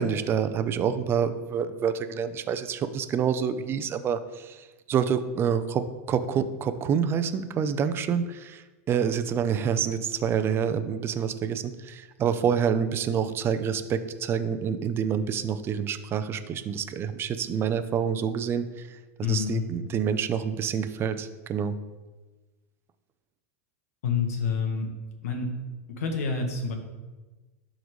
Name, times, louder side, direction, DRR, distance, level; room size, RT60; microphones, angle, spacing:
voice 1, 0.0-19.0 19.3-21.8, right 7 dB, 30° right, 10 dB, 0.6 m, -27 dB
voice 2, 19.2-19.6 24.0-24.9 25.2-25.6 25.9-26.7, left 5 dB, 75° left, 3 dB, 1.5 m, -28 dB
11.5 x 3.9 x 3.2 m, 1.2 s
hypercardioid pair, 115°, 8 cm